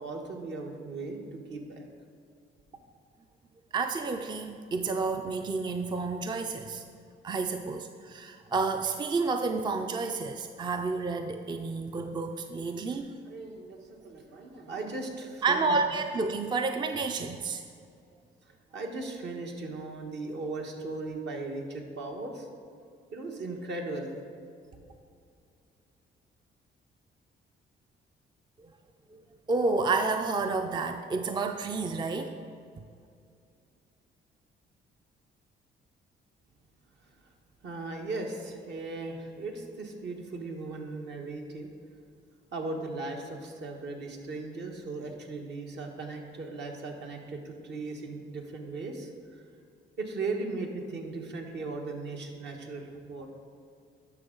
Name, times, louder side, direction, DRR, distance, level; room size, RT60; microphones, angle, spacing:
voice 1, 0.0-1.9 13.3-15.8 18.4-22.5 23.1-24.1 37.0-37.3 37.6-41.7 42.5-49.4 50.0-53.3, right 3 dB, 60° right, 2 dB, 1.3 m, -37 dB
voice 2, 3.7-6.8 7.2-13.1 15.4-17.6 28.6-28.7 29.1-29.2 29.5-32.5, right 4 dB, 25° right, 6 dB, 0.4 m, -30 dB
10.5 x 6.1 x 3.8 m, 2.4 s
cardioid pair, 90°, 20 cm